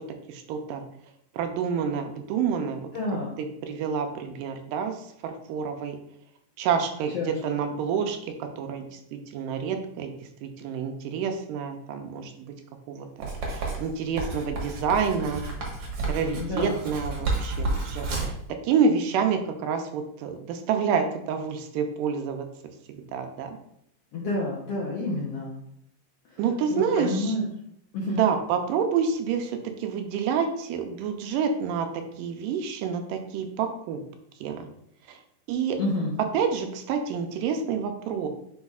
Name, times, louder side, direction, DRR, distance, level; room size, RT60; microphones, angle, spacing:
voice 1, 0.3-0.8 1.3-2.8 3.6-6.0 6.6-10.1 10.4-12.5 12.9-15.5 16.1-18.4 18.6-22.5 22.9-23.6 26.4-27.3 28.1-34.0 34.4-34.7 35.1-35.2 35.5-35.8 36.3-38.3, right 6 dB, 80° right, 5 dB, 2.2 m, -28 dB
voice 2, 2.9-3.3 7.1-7.3 16.3-16.8 24.1-25.6 26.7-27.4 27.9-28.2 35.8-36.1, left 2 dB, 70° left, -4 dB, 1.5 m, -29 dB
Writing, 13.2-18.4, right 3 dB, 55° right, 1.8 m, -31 dB
9.5 x 4.4 x 2.4 m, 0.74 s
omnidirectional pair, 4.0 m